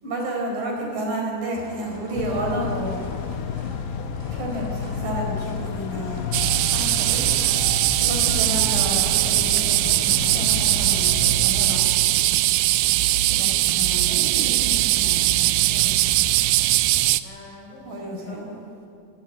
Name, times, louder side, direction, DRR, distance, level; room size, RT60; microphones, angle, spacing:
voice 1, 0.0-3.1 4.3-6.3 6.7-7.3 8.0-11.9 13.3-16.3 17.8-18.5, right 1 dB, 65° right, 0 dB, 6.1 m, -31 dB
sound 1, 1.5-7.7, equal, 15° right, 3.0 m, -41 dB
sound 2, 2.2-11.7, left 7 dB, 80° left, 2.3 m, -31 dB
sound 3, 6.3-17.2, right 16 dB, 80° right, 2.4 m, -20 dB
voice 2, 9.0-9.6 17.2-18.9, left 2 dB, 55° left, -1 dB, 6.8 m, -45 dB
25.5 x 14.5 x 8.8 m, 2.5 s
omnidirectional pair, 4.3 m